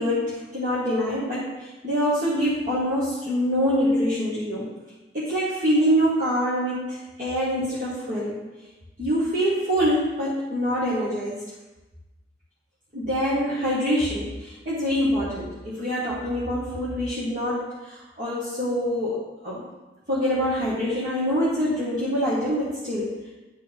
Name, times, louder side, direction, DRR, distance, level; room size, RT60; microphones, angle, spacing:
voice 1, 0.0-4.7 5.1-8.4 9.0-11.4 12.9-19.2 19.4-19.6 20.1-23.3, equal, 50° right, -10 dB, 1.7 m, -25 dB
11.5 x 4.3 x 3.5 m, 1.1 s
head